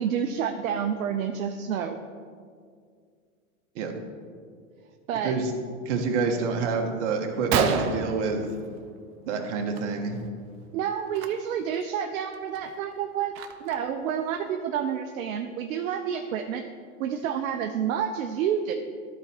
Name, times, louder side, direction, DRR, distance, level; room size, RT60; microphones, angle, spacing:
voice 1, 0.0-2.0 5.1-5.3 10.7-13.3 13.6-16.6 17.0-18.7, right 8 dB, 75° right, 5 dB, 0.7 m, -29 dB
voice 2, 5.8-8.5 9.2-10.2, right 4 dB, 60° right, 3 dB, 1.4 m, -27 dB
Gunshot gunfire, 6.8-6.9 7.2-7.3 7.5-9.1 9.4-9.8 10.1-10.3 11.1-11.3 11.8-11.9 12.3-13.9, right 6 dB, 30° right, 0.6 m, -29 dB
12.5 x 4.2 x 4.4 m, 2.1 s
hypercardioid pair, 120°, 40 cm